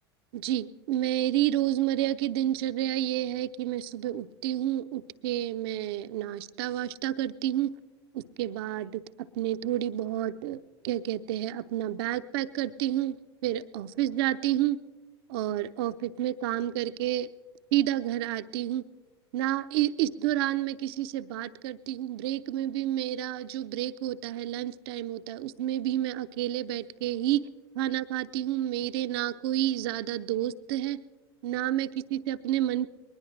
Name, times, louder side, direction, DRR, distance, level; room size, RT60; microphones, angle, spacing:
voice 1, 0.3-7.7 8.1-13.2 13.4-14.8 15.3-17.3 17.7-18.8 19.3-27.4 27.8-31.0 31.4-32.9, right 13 dB, 60° right, 11 dB, 0.7 m, -30 dB
21.5 x 19.5 x 3.3 m, 1.3 s
hypercardioid pair, 85°, 14 cm